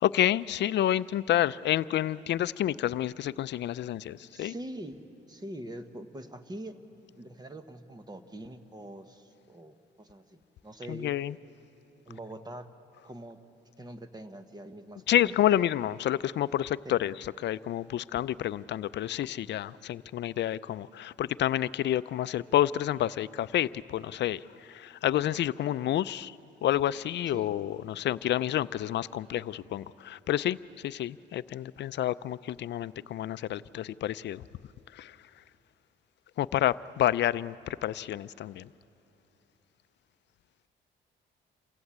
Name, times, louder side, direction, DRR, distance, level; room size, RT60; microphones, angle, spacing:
voice 1, 0.0-4.5 10.9-11.4 15.1-26.4 26.6-30.6 30.8-34.4 34.9-35.2 36.4-38.7, left 12 dB, 60° left, 17 dB, 0.5 m, -29 dB
voice 2, 4.3-6.8 7.2-11.1 12.1-12.7 13.0-13.4 13.8-15.5 16.8-17.0 27.3-27.6, right 1 dB, 20° right, 8 dB, 1.3 m, -44 dB
27.5 x 16.0 x 8.6 m, 3.0 s
cardioid pair, 90°, 20 cm